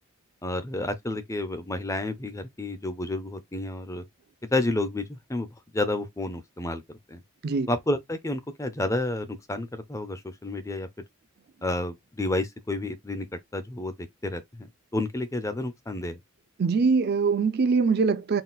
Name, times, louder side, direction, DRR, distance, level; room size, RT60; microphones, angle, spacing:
voice 1, 0.4-4.0 4.5-6.8 7.1-7.2 7.7-10.9 11.6-13.3 13.5-14.7 14.9-16.2, left 2 dB, 15° left, 0.5 m, -30 dB
voice 2, 16.6-18.4, right 4 dB, 45° right, 0.4 m, -23 dB
4.0 x 3.8 x 2.3 m
head